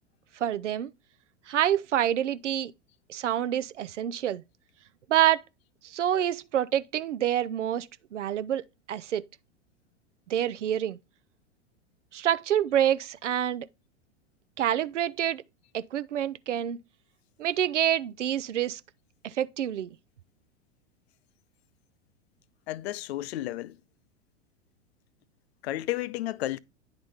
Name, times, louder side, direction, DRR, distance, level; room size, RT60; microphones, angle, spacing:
voice 1, 0.4-0.9 1.5-2.7 3.1-4.4 5.1-5.4 5.8-8.6 8.9-9.2 10.3-11.0 12.1-13.7 14.6-15.4 15.7-16.8 17.4-18.8 19.2-20.0, right 11 dB, 80° right, 0.5 m, -27 dB
voice 2, 22.7-23.8 25.6-26.6, left 15 dB, 60° left, 0.5 m, -32 dB
9.6 x 4.0 x 3.3 m
hypercardioid pair, 95°, 36 cm